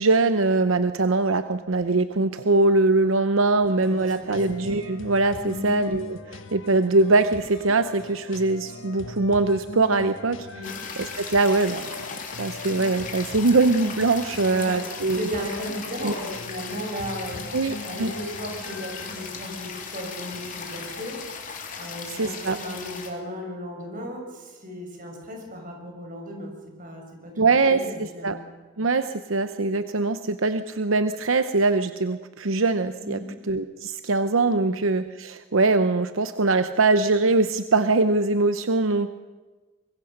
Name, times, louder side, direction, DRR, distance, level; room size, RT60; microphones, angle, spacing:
voice 1, 0.0-10.4 11.0-15.3 16.0-16.1 17.5-18.1 22.2-22.6 27.4-27.8 28.2-28.4 28.8-39.1, right 3 dB, 80° right, 10 dB, 0.9 m, -22 dB
sound 1, 3.7-21.3, left 3 dB, 70° left, 1.5 m, -41 dB
voice 2, 3.7-4.4 5.4-5.7 10.5-10.7 14.5-14.8 15.1-21.2 21.7-26.5 26.8-28.4 33.0-33.3 34.6-34.7, equal, 45° right, 2 dB, 6.4 m, -36 dB
sound 2, 10.6-23.1, left 6 dB, 40° left, 3.3 m, -37 dB
24.5 x 22.0 x 6.7 m, 1.3 s
head